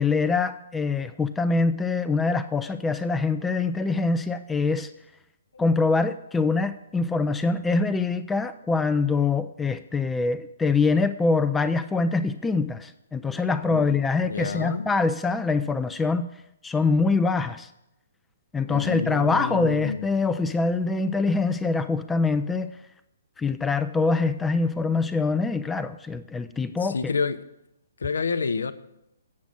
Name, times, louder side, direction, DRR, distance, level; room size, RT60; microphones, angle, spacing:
voice 1, 0.0-4.9 5.6-16.3 16.6-17.7 18.5-22.7 23.4-27.1, left 4 dB, 10° left, 10 dB, 0.3 m, -24 dB
voice 2, 14.3-14.9 18.7-20.0 26.8-27.4 28.0-28.7, left 5 dB, 70° left, 12 dB, 0.6 m, -28 dB
8.4 x 6.0 x 7.5 m, 0.84 s
figure-of-eight pair, 125°, 0 cm